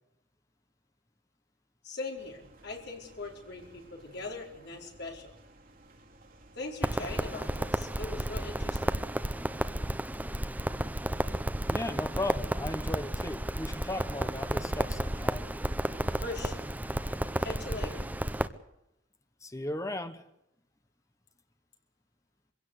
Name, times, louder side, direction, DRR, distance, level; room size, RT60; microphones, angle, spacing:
voice 1, 1.8-5.3 6.5-8.9 16.2-16.7 17.4-18.1, left 2 dB, 60° left, 1 dB, 4.7 m, -40 dB
sound 1, 2.2-18.1, right 2 dB, 50° right, 3.0 m, -57 dB
Crackle, 6.8-18.5, right 1 dB, 10° right, 0.7 m, -32 dB
voice 2, 11.7-15.5 19.4-20.3, left 1 dB, 15° left, 9 dB, 1.2 m, -36 dB
23.0 x 16.5 x 8.3 m, 0.83 s
head